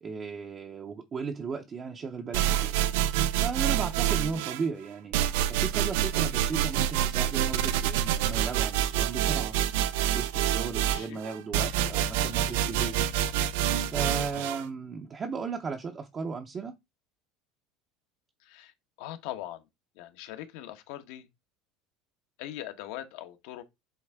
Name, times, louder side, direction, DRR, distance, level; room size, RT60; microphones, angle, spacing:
voice 1, 0.0-2.8 3.1-9.5 9.9-13.0 13.8-16.8, right 5 dB, 20° right, 0.7 m, -36 dB
sound 1, 2.3-4.6 5.1-14.6, right 11 dB, 75° right, 0.6 m, -27 dB
voice 2, 18.4-18.7 19.0-19.6 20.0-21.3 22.4-23.6, left 13 dB, 65° left, 1.2 m, -41 dB
8.1 x 3.6 x 3.5 m
cardioid pair, 165°, 0 cm